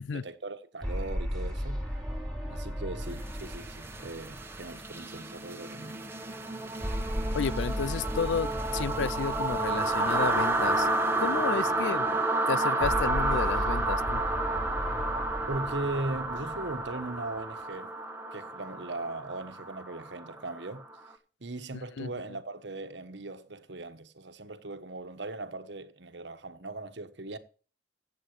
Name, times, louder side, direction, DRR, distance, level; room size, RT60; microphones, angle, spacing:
voice 1, 0.0-1.9 2.5-6.0 6.6-6.7 15.5-17.9 18.3-20.9 21.4-27.4, right 2 dB, 75° right, 1.3 m, -39 dB
sound 1, 0.8-5.4 6.8-11.2 12.8-17.4, equal, ahead, 3.8 m, -36 dB
sound 2, 3.2-20.9, right 2 dB, 15° right, 1.3 m, -31 dB
voice 2, 7.3-10.9 11.2-12.1 12.5-14.2 21.7-22.1, left 6 dB, 85° left, 0.4 m, -32 dB
16.0 x 7.9 x 3.2 m
head